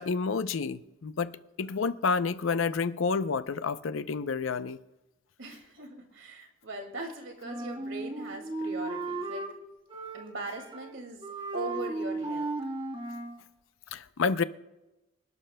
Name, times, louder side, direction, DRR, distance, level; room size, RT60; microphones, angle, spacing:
voice 1, 0.0-1.3 1.6-4.8 13.9-14.4, left 5 dB, 75° left, 0.5 m, -29 dB
voice 2, 5.4-9.5 10.1-11.3 11.5-12.5, right 2 dB, 70° right, 2.2 m, -40 dB
Wind instrument woodwind instrument, 7.4-9.5 9.9-10.9 11.2-13.4, right 2 dB, 25° right, 1.4 m, -35 dB
26.0 x 12.0 x 2.2 m
head